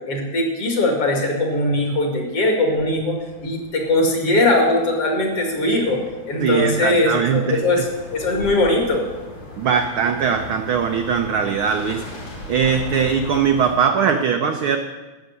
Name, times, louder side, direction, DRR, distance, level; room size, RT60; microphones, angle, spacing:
voice 1, 0.1-9.0, left 2 dB, 55° left, 2 dB, 3.0 m, -20 dB
sound 1, 2.2-13.8, left 1 dB, 75° left, 6.0 m, -38 dB
voice 2, 6.4-7.6 9.6-12.0 12.5-14.8, right 6 dB, 80° right, 5 dB, 1.1 m, -20 dB
11.5 x 7.2 x 9.5 m, 1.2 s
omnidirectional pair, 3.3 m